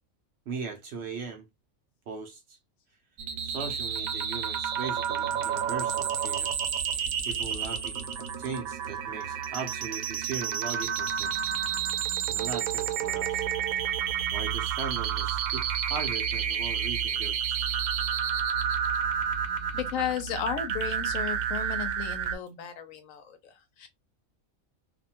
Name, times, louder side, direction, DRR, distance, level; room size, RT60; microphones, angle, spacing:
voice 1, 0.5-1.5 2.1-2.6 3.4-6.6 6.9-11.5 12.3-13.5 14.3-17.6, right 5 dB, 65° right, 0.7 m, -39 dB
sound 1, 3.2-22.4, right 8 dB, 90° right, 1.0 m, -30 dB
voice 2, 19.7-23.9, left 8 dB, 75° left, 1.0 m, -34 dB
2.6 x 2.1 x 2.7 m
omnidirectional pair, 1.4 m